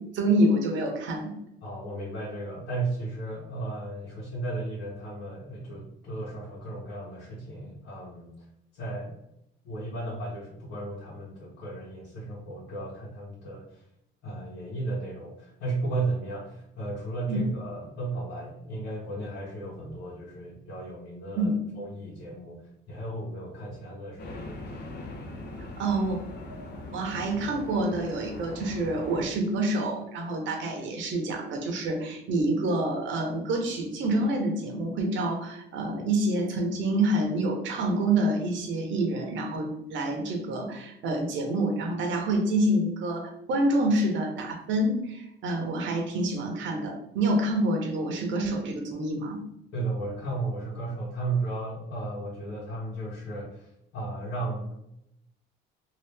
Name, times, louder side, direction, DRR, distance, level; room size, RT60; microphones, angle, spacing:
voice 1, 0.1-1.4 17.3-17.4 21.4-21.6 25.8-26.2 26.9-49.4, right 1 dB, 70° right, 2 dB, 0.9 m, -27 dB
voice 2, 1.6-8.3 8.7-9.2 9.6-13.8 14.2-24.8 49.7-54.8, right 2 dB, 85° left, -7 dB, 1.1 m, -35 dB
sound 1, 24.2-29.3, left 2 dB, 55° left, 0.7 m, -40 dB
2.8 x 2.5 x 3.3 m, 0.80 s
cardioid pair, 105°, 20 cm